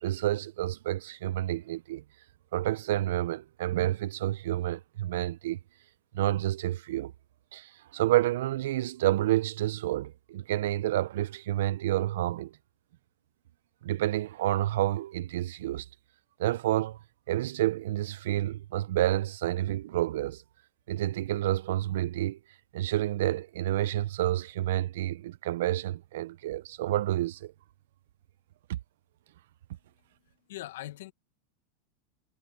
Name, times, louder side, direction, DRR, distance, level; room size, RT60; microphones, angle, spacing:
voice 1, 0.0-2.0 2.5-5.6 6.1-7.1 7.5-12.5 13.8-15.9 16.4-17.0 17.3-20.4 20.9-22.4 22.7-27.5 28.7-28.8, right 14 dB, 80° right, 0.6 m, -29 dB
voice 2, 29.8-31.1, left 15 dB, 80° left, 1.4 m, -43 dB
supercardioid pair, 130°, 0 cm